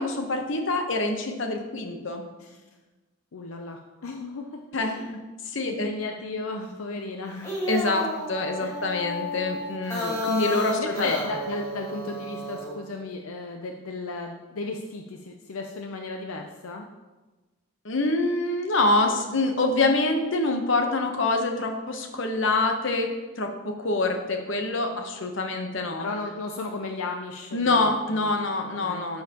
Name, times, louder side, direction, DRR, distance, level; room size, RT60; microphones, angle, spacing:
voice 1, 0.0-2.2 4.7-5.0 5.5-5.9 7.7-11.1 17.8-26.1 27.5-29.2, left 2 dB, 60° left, 4 dB, 0.9 m, -26 dB
voice 2, 3.3-5.2 5.6-7.5 8.6-8.8 10.7-16.9 26.0-28.3 28.8-29.1, left 3 dB, 80° left, 3 dB, 0.6 m, -35 dB
sound 1, 7.3-12.8, left 1 dB, 15° left, 1.6 m, -32 dB
12.0 x 5.6 x 2.9 m, 1.2 s
head